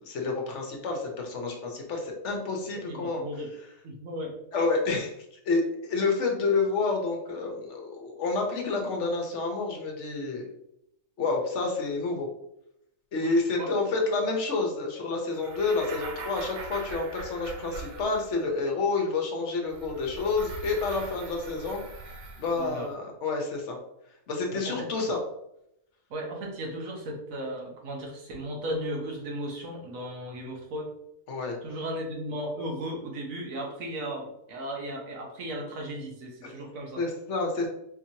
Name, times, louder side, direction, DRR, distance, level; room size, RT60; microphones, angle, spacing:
voice 1, 0.0-3.2 4.5-5.1 5.5-10.5 11.2-12.3 13.1-21.8 22.4-23.8 24.3-25.2 31.3-31.6 36.4-36.5 37.0-37.7, left 3 dB, 60° left, 2 dB, 1.1 m, -29 dB
voice 2, 2.9-3.5 3.8-4.3 13.2-13.8 22.6-22.9 24.5-24.9 26.1-30.9 31.6-37.0, right 1 dB, 75° right, 0 dB, 1.4 m, -36 dB
sound 1, 15.3-18.6 19.7-22.8, right 3 dB, 60° right, 0.5 m, -42 dB
4.3 x 3.0 x 2.7 m, 0.81 s
omnidirectional pair, 1.4 m